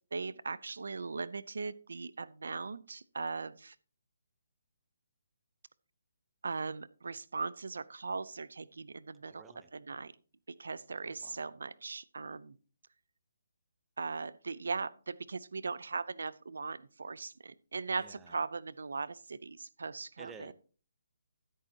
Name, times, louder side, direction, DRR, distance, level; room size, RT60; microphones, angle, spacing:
voice 1, 0.1-3.7 6.4-9.4 9.7-10.1 10.6-12.5 14.0-20.5, right 4 dB, 75° right, 19 dB, 0.6 m, -39 dB
voice 2, 9.3-9.7 11.0-11.5 18.0-18.4 20.2-20.5, right 5 dB, 10° right, 10 dB, 0.8 m, -53 dB
13.5 x 9.8 x 2.9 m, 0.39 s
hypercardioid pair, 155°, 0 cm